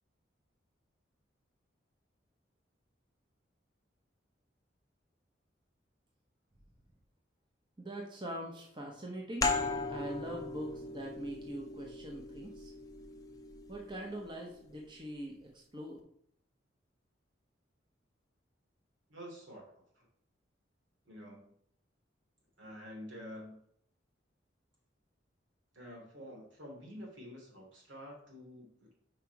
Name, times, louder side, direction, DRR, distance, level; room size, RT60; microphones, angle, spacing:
voice 1, 7.8-9.5 9.9-12.7 13.7-16.0, right 1 dB, 25° right, 0 dB, 0.9 m, -43 dB
sound 1, 9.4-14.7, left 3 dB, 20° left, 0.6 m, -38 dB
voice 2, 19.1-19.6 20.0-20.1 21.1-21.5 22.6-23.6 25.7-28.9, equal, 75° right, -2 dB, 2.9 m, -48 dB
5.8 x 4.7 x 4.6 m, 0.68 s
head